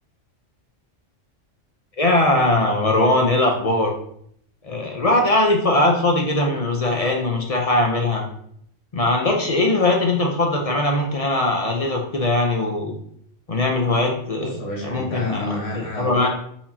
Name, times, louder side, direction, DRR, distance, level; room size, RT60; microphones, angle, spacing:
voice 1, 2.0-3.9 4.6-8.2 8.9-12.9 13.5-14.5 14.8-15.6 16.0-16.3, left 2 dB, 40° left, 1 dB, 0.6 m, -20 dB
voice 2, 14.4-16.3, left 1 dB, 85° left, -2 dB, 1.5 m, -29 dB
4.7 x 3.6 x 2.7 m, 0.67 s
omnidirectional pair, 1.2 m